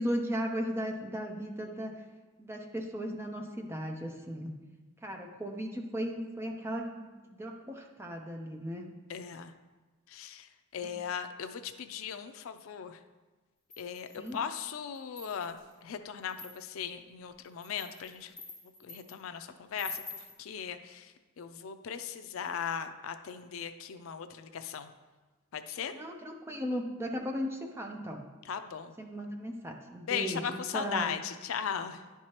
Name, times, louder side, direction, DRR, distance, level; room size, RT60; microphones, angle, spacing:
voice 1, 0.0-1.9 2.4-4.5 5.0-8.9 14.2-14.4 25.9-28.2 29.0-31.1, equal, 10° right, 2 dB, 0.6 m, -36 dB
voice 2, 9.1-9.5 10.1-13.0 13.8-18.3 18.8-24.9 25.5-25.9 28.5-29.0 30.0-32.0, left 7 dB, 80° left, 9 dB, 0.4 m, -38 dB
sound 1, 13.7-14.4 14.9-15.6 16.3-16.8 17.4-19.2 19.8-20.4, left 3 dB, 5° left, 2.3 m, -46 dB
10.5 x 4.6 x 2.9 m, 1.2 s
head